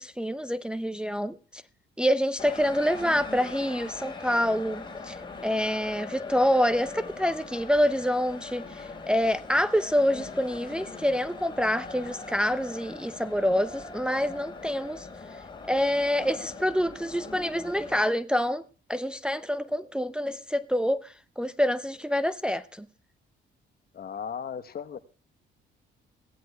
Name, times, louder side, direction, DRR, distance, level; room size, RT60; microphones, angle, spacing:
voice 1, 0.0-1.6 2.0-5.2 5.4-15.1 15.7-18.6 18.9-22.9, equal, 5° right, 0.5 m, -27 dB
sound 1, 2.4-18.0, left 4 dB, 25° left, 4.8 m, -41 dB
voice 2, 23.9-25.0, left 7 dB, 50° left, 1.1 m, -36 dB
22.0 x 15.5 x 2.3 m
cardioid pair, 90°, 20 cm